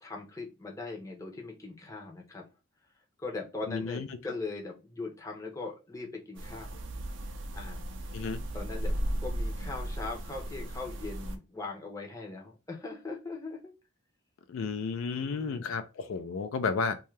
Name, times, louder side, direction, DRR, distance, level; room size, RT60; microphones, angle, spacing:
voice 1, 0.0-2.4 3.2-6.8 7.5-8.1 8.5-8.9 9.2-13.7 15.1-15.7, left 3 dB, 15° left, 0.6 m, -40 dB
voice 2, 3.7-4.1 8.1-8.4 14.5-17.0, left 5 dB, 75° left, 0.4 m, -32 dB
sound 1, 6.4-11.4, right 1 dB, 60° right, 0.4 m, -35 dB
2.7 x 2.3 x 3.1 m
head